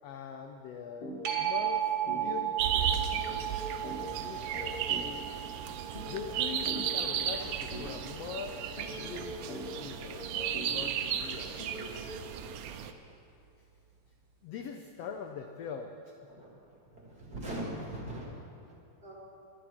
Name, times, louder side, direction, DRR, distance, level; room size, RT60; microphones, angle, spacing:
voice 1, 0.0-1.1 1.4-3.1 4.2-4.9 6.0-8.6 8.9-11.6 14.4-16.2, left 6 dB, 75° left, 5 dB, 1.5 m, -42 dB
sound 1, 1.0-1.2 1.5-1.7 2.1-12.3, equal, 50° left, 2.5 m, -43 dB
sound 2, 1.2-8.4 13.9-14.0, right 11 dB, 50° right, 2.2 m, -36 dB
sound 3, 2.6-12.9, right 9 dB, 85° right, 2.3 m, -35 dB
voice 2, 16.9-18.3 18.6-18.7 19.0-19.1, right 1 dB, 35° right, -3 dB, 2.2 m, -40 dB
19.5 x 12.0 x 4.4 m, 2.7 s
omnidirectional pair, 3.6 m